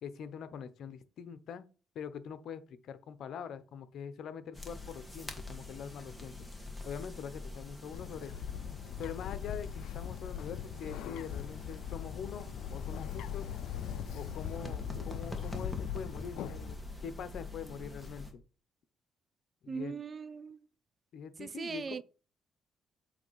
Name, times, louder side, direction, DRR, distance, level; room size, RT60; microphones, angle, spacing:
voice 1, 0.0-1.7 1.9-6.3 6.8-8.3 9.0-13.5 14.1-18.4 19.6-19.9 21.1-22.0, left 7 dB, 70° left, 0.9 m, -43 dB
sound 1, 4.5-18.3, left 2 dB, 5° left, 1.9 m, -45 dB
Bird, 7.9-16.7, left 10 dB, 85° left, 0.4 m, -41 dB
voice 2, 19.7-20.6 21.4-22.0, right 6 dB, 40° right, 0.4 m, -39 dB
8.1 x 3.4 x 5.7 m
cardioid pair, 90°, 0 cm